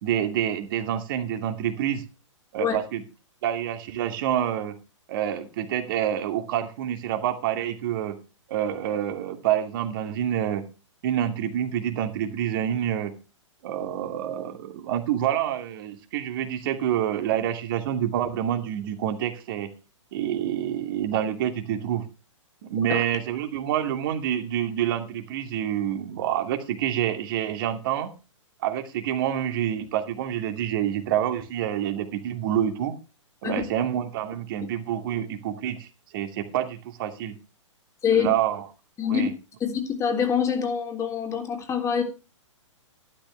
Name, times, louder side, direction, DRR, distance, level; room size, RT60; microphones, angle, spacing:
voice 1, 0.0-2.1 2.5-3.0 3.4-4.8 5.1-8.2 8.5-10.6 11.0-13.1 13.6-19.7 20.1-22.0 22.6-28.1 28.6-32.9 33.4-35.9 36.1-37.4 38.1-38.6 39.0-39.3, right 10 dB, 45° right, 7 dB, 2.5 m, -27 dB
voice 2, 39.0-39.3 39.6-42.0, left 7 dB, 20° left, 4 dB, 3.3 m, -25 dB
13.0 x 12.0 x 3.4 m, 0.32 s
figure-of-eight pair, 115°, 16 cm